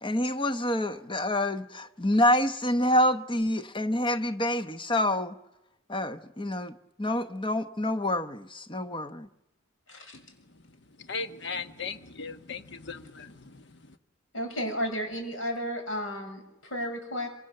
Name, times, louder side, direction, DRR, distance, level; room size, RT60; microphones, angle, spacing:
voice 1, 0.0-5.4 5.9-9.3, left 1 dB, 25° left, 0.9 m, -27 dB
voice 2, 11.1-13.6, left 4 dB, 60° left, 1.2 m, -37 dB
voice 3, 14.3-17.3, equal, 85° left, 6.3 m, -33 dB
26.0 x 25.5 x 6.7 m
head